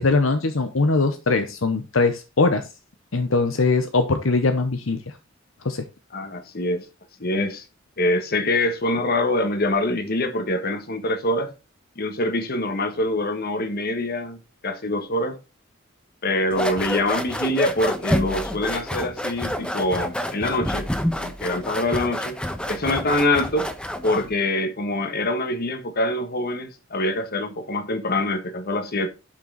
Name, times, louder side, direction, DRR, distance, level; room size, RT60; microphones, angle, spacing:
voice 1, 0.0-2.7 3.1-5.2 5.6-5.9, left 3 dB, 75° left, 0.9 m, -21 dB
voice 2, 6.1-6.9 7.2-7.6 8.0-11.5 11.9-14.4 14.6-15.4 16.2-20.9 21.2-22.4 22.7-23.7 24.0-29.1, left 1 dB, 50° left, 1.5 m, -24 dB
sound 1, 16.5-24.3, equal, 5° left, 1.1 m, -28 dB
11.5 x 5.8 x 4.0 m
head